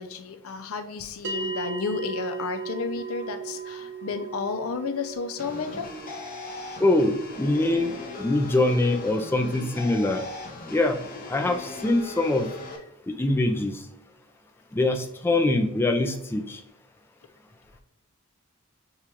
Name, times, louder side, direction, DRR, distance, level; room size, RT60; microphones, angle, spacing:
voice 1, 0.0-5.9 7.6-7.7, left 5 dB, 85° left, 8 dB, 0.5 m, -32 dB
sound 1, 1.2-11.8, right 5 dB, 55° right, 0.7 m, -39 dB
sound 2, 5.4-12.8, left 3 dB, 45° left, 0.8 m, -39 dB
voice 2, 6.8-10.2 10.7-11.0 11.3-12.5 13.1-13.8 14.7-16.6, left 2 dB, 10° left, 3 dB, 0.3 m, -24 dB
6.6 x 2.3 x 2.9 m, 0.82 s
head